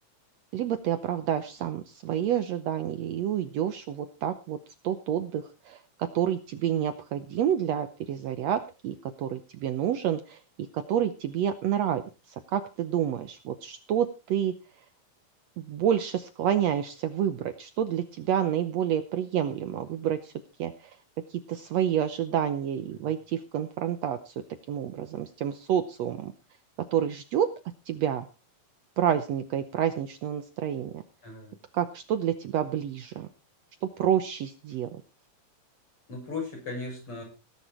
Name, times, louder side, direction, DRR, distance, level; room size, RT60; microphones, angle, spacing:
voice 1, 0.5-4.6 4.8-10.4 10.7-12.0 12.5-14.5 15.6-20.3 20.6-20.7 21.3-24.3 24.7-26.3 26.9-27.5 27.9-28.3 29.0-31.0 31.7-33.3 33.8-34.9, right 9 dB, 70° right, 10 dB, 1.7 m, -28 dB
voice 2, 31.2-31.5 36.1-37.2, left 3 dB, 40° left, 1 dB, 8.4 m, -37 dB
18.0 x 10.0 x 4.3 m, 0.32 s
omnidirectional pair, 3.9 m